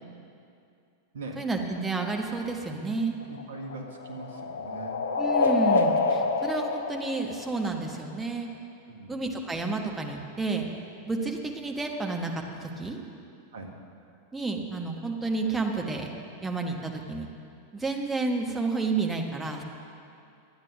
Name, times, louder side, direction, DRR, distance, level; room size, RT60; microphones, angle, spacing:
voice 1, 1.3-3.2 5.2-8.5 9.1-10.7 11.1-13.0 14.3-16.1 16.4-17.3 17.7-19.6, right 3 dB, 10° right, 2 dB, 1.3 m, -30 dB
sound 1, 3.2-8.0, left 4 dB, 65° left, 0.8 m, -27 dB
voice 2, 3.3-5.1 6.2-6.3 8.9-9.2 13.5-13.7, right 3 dB, 60° right, 2 dB, 1.6 m, -41 dB
12.0 x 9.0 x 6.0 m, 2.5 s
figure-of-eight pair, 90°, 0 cm